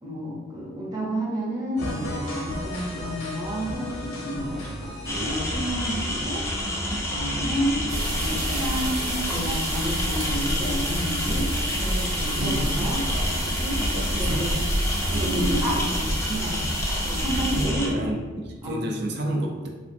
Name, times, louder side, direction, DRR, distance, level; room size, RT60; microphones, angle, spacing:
voice 1, 0.0-4.6 5.0-6.4 7.1-7.8 8.2-11.5 11.8-13.0 13.4-13.8 14.2-14.6 15.1-17.9 18.6-18.8, equal, 20° right, -6 dB, 0.7 m, -30 dB
sound 1, 1.8-7.9, left 1 dB, 85° left, 0.8 m, -36 dB
sound 2, 5.1-17.9, left 1 dB, 15° left, 0.3 m, -29 dB
sound 3, 7.9-17.7, right 1 dB, 90° right, 0.9 m, -29 dB
voice 2, 12.1-13.0 13.9-14.7 17.5-19.7, right 1 dB, 55° right, 1 dB, 0.5 m, -31 dB
3.4 x 2.5 x 2.6 m, 1.4 s
head